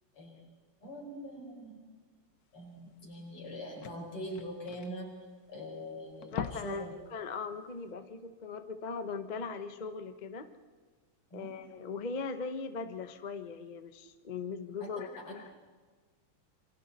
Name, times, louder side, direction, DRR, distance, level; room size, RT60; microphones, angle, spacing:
voice 1, 0.1-0.5 0.8-1.9 2.5-5.1 5.5-6.9 11.3-11.5 14.8-14.9 15.2-15.3, equal, 80° left, -1 dB, 5.9 m, -43 dB
sound 1, 2.8-2.9 3.1-3.2 3.4-5.7 6.1-6.9 7.2-7.4 7.8-7.9, left 8 dB, 55° left, 1.1 m, -42 dB
voice 2, 6.3-10.5 11.3-15.4, left 5 dB, 35° left, 9 dB, 0.6 m, -39 dB
27.5 x 24.5 x 4.2 m, 1.4 s
omnidirectional pair, 2.4 m